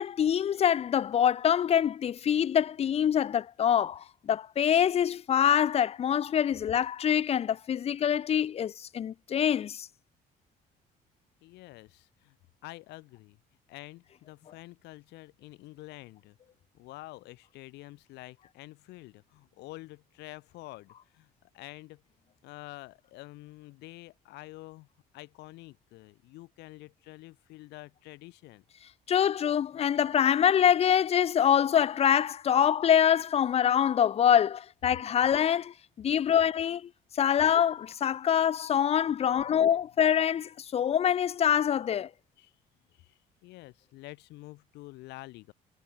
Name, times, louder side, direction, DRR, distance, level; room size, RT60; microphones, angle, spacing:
voice 1, 0.0-9.9 29.1-42.1, left 9 dB, 35° left, 0.5 m, -25 dB
voice 2, 11.4-12.4 12.6-13.4 13.7-16.4 16.7-22.0 22.4-24.9 25.1-28.6 39.4-39.6 42.4-42.5 42.9-45.5, left 19 dB, 85° left, 2.0 m, -48 dB
cardioid pair, 110°, 17 cm